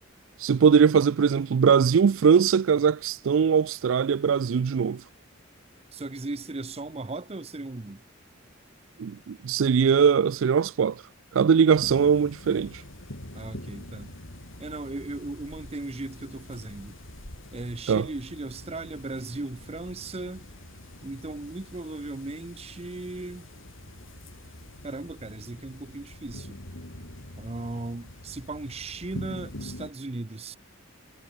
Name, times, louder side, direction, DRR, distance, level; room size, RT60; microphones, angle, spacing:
voice 1, 0.4-5.0 9.0-11.0 11.3-12.8 17.9-18.1, right 6 dB, 75° right, 0.4 m, -21 dB
voice 2, 5.9-8.0 13.3-14.1 14.6-17.0 17.5-20.5 21.0-23.5 24.8-26.6 27.4-30.6, right 2 dB, 30° right, 0.7 m, -37 dB
sound 1, 11.7-29.9, left 1 dB, 70° left, 3.9 m, -44 dB
head